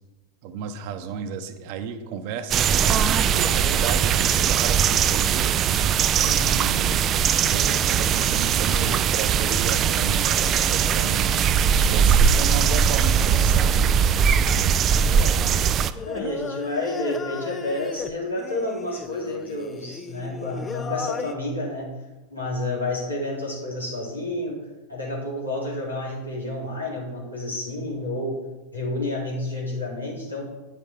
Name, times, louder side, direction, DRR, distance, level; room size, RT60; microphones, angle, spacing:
voice 1, 0.4-5.5 6.3-7.1 7.4-11.5 11.9-13.9, right 6 dB, 50° right, 8 dB, 0.9 m, -33 dB
sound 1, 2.5-15.9, right 7 dB, 30° right, 0.4 m, -20 dB
voice 2, 6.2-6.7 14.9-15.4 16.0-21.9 22.3-24.6 24.9-28.4 28.7-30.4, left 1 dB, 90° left, -6 dB, 3.0 m, -30 dB
Singing, 15.9-21.3, left 5 dB, 20° left, 0.5 m, -36 dB
9.1 x 7.7 x 3.5 m, 1.1 s
figure-of-eight pair, 90°, 0 cm